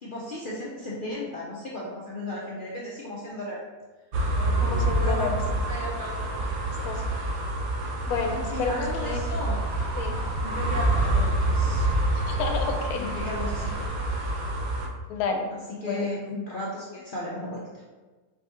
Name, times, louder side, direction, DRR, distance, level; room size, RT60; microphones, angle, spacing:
voice 1, 0.0-3.6 4.4-5.4 5.7-6.1 8.3-9.6 10.4-12.0 13.0-13.8 15.8-17.8, left 1 dB, 60° left, -6 dB, 0.5 m, -35 dB
sound 1, 4.1-14.9, right 2 dB, 60° right, 0.7 m, -27 dB
voice 2, 4.6-5.4 6.8-7.0 8.1-9.2 10.0-10.2 12.1-13.1 15.1-15.5 15.9-16.1, left 5 dB, 75° left, 3 dB, 1.1 m, -30 dB
sound 2, 8.1-13.9, equal, 35° left, 0.8 m, -42 dB
4.4 x 2.8 x 3.4 m, 1.3 s
omnidirectional pair, 1.6 m